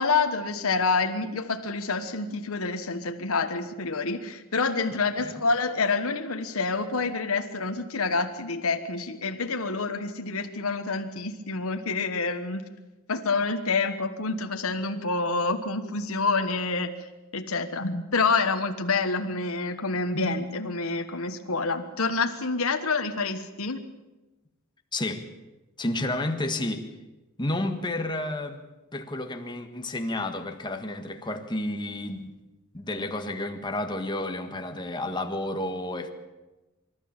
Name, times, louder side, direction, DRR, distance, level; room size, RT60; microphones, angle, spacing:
voice 1, 0.0-12.6 13.1-16.9 17.3-23.8, left 4 dB, 85° left, 6 dB, 1.4 m, -27 dB
voice 2, 24.9-25.2 25.8-26.9 27.4-28.6 28.9-32.3 32.7-36.1, left 1 dB, 20° left, 5 dB, 1.7 m, -31 dB
25.0 x 13.0 x 8.9 m, 1.1 s
head